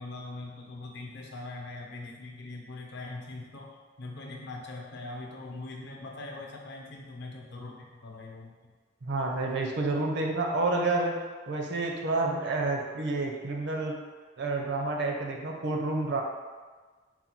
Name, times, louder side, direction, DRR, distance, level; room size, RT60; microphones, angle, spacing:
voice 1, 0.0-8.5, left 2 dB, 60° left, 0 dB, 0.7 m, -42 dB
voice 2, 9.0-11.2 11.5-14.0 14.4-16.2, right 2 dB, 60° right, 1 dB, 0.6 m, -29 dB
4.0 x 2.2 x 4.4 m, 1.4 s
head